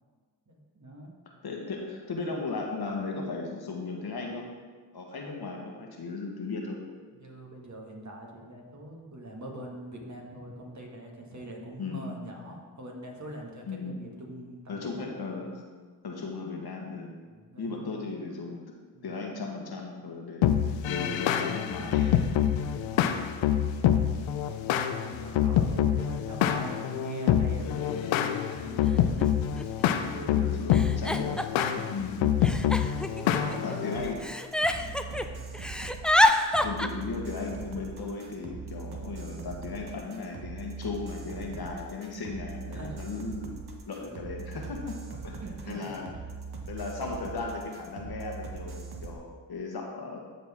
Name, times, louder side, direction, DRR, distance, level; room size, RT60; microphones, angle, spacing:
voice 1, 0.5-1.1 7.1-15.4 17.3-18.1 18.9-19.2 22.6-23.3 23.6-29.2 30.0-30.4 31.7-31.9 32.8-34.4 34.6-35.6 41.5-41.7 42.7-43.0 45.0-46.0, right 1 dB, 40° right, 0 dB, 1.9 m, -44 dB
voice 2, 1.4-4.5 4.9-6.9 11.8-12.2 13.7-14.0 14.7-15.6 16.0-17.2 17.6-18.7 19.0-20.5 20.9-22.4 30.3-32.3 33.6-34.2 36.6-43.6 43.9-45.0 45.2-45.4 45.7-46.1 46.7-50.2, left 3 dB, 55° left, 0 dB, 1.5 m, -36 dB
sound 1, 20.4-34.1, left 10 dB, 80° left, 0.6 m, -26 dB
Giggle, 29.2-29.3 29.6-30.1 30.7-31.8 32.4-33.8 34.2-35.3 35.5-36.9, left 1 dB, ahead, 0.4 m, -26 dB
sound 2, 33.9-49.1, right 4 dB, 55° right, 1.3 m, -41 dB
12.5 x 4.2 x 3.7 m, 1.5 s
supercardioid pair, 45°, 45 cm